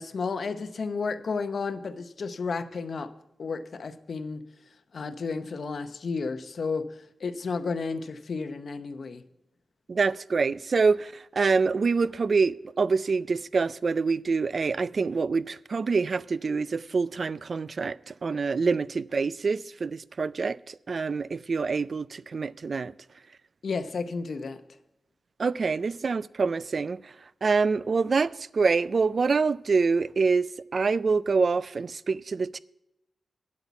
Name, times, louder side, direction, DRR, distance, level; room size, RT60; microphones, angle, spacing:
voice 1, 0.0-3.1 3.4-4.4 4.9-6.9 7.2-9.2 23.6-24.6, left 4 dB, 60° left, 0.7 m, -32 dB
voice 2, 9.9-22.9 25.4-27.1 27.4-32.6, right 4 dB, 50° right, 0.3 m, -26 dB
9.7 x 8.1 x 5.8 m
wide cardioid pair, 140°, 0 cm